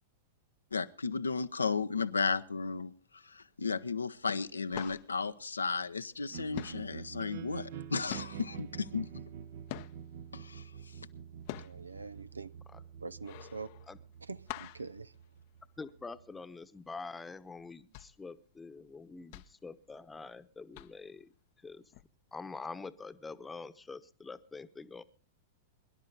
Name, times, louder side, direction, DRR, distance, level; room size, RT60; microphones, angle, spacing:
voice 1, 0.7-9.1 10.3-11.0, left 4 dB, 85° left, 0.8 m, -34 dB
sound 1, 3.6-4.1 4.3-6.3 6.5-10.3 10.7-16.0 16.4-16.5 16.8-17.1 17.6-20.4 20.7-21.2 21.9-22.0, left 18 dB, 50° left, 0.7 m, -46 dB
sound 2, 6.3-16.4, right 8 dB, 55° right, 0.9 m, -47 dB
voice 2, 11.6-12.5 13.0-13.7 14.3-15.1, right 4 dB, 85° right, 0.6 m, -44 dB
voice 3, 15.8-21.3 21.6-21.8 22.3-25.0, left 4 dB, 10° left, 1.0 m, -45 dB
22.5 x 11.5 x 3.9 m
figure-of-eight pair, 100°, 0 cm